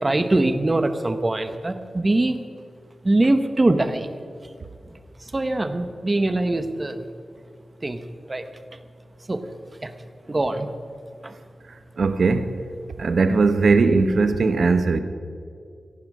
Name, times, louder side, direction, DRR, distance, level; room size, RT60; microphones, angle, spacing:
voice 1, 0.0-2.4 3.0-4.1 5.3-7.0 7.8-8.0 8.3-8.4 9.3-9.4 10.3-10.7, right 2 dB, 25° right, 1.0 m, -22 dB
voice 2, 12.0-12.6 13.0-15.0, right 4 dB, 65° right, 0.9 m, -19 dB
17.5 x 15.0 x 5.5 m
wide cardioid pair, 145°, 0 cm